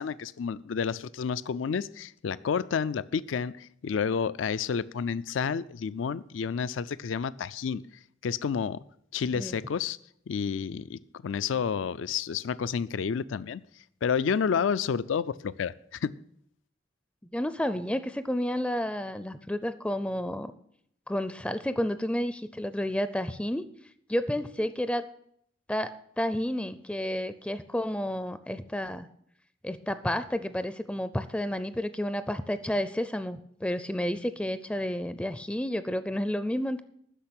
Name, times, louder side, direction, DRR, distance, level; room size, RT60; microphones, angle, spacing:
voice 1, 0.0-7.8 8.2-8.8 9.1-10.0 10.3-13.6 14.0-16.1, left 6 dB, 85° left, 18 dB, 0.4 m, -30 dB
voice 2, 17.3-20.5 21.1-23.7 24.1-25.1 25.7-29.1 29.6-36.8, left 1 dB, 5° left, 13 dB, 0.4 m, -31 dB
10.0 x 6.6 x 8.7 m, 0.70 s
head